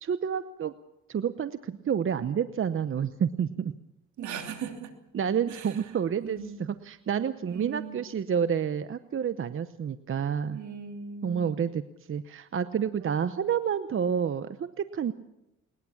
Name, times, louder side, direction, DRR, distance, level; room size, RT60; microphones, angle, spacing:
voice 1, 0.0-0.7 1.1-3.7 5.1-10.6 11.2-11.8 12.1-15.1, right 8 dB, 45° right, 12 dB, 0.9 m, -29 dB
voice 2, 4.2-4.9 5.5-5.8 6.2-6.6 7.5-8.0 10.5-11.6 13.0-13.4, right 7 dB, 75° right, 5 dB, 3.0 m, -39 dB
20.5 x 20.5 x 7.2 m, 0.88 s
cardioid pair, 90°, 30 cm